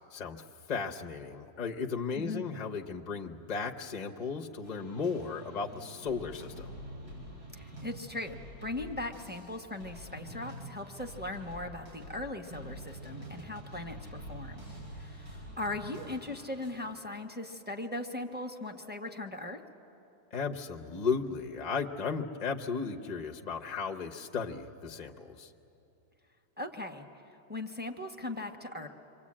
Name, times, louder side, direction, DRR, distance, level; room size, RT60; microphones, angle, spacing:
voice 1, 0.1-0.4 0.7-6.7 20.3-25.5, left 5 dB, 40° left, 2 dB, 0.6 m, -35 dB
voice 2, 2.2-2.6 7.5-14.6 14.9-19.6 26.6-27.1 27.5-28.9, left 2 dB, 5° right, 2 dB, 0.9 m, -39 dB
sound 1, 4.6-16.7, equal, 80° right, 9.0 m, -46 dB
27.5 x 24.0 x 8.7 m, 2.8 s
omnidirectional pair, 2.1 m